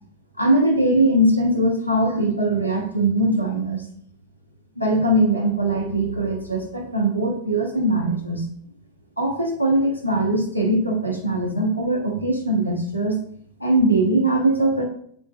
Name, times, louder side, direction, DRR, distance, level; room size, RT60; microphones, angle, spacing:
voice 1, 0.4-3.9 4.8-8.4 9.2-13.2 13.6-14.8, right 1 dB, 90° left, 0 dB, 0.5 m, -21 dB
3.7 x 2.5 x 2.2 m, 0.63 s
figure-of-eight pair, 90°, 0 cm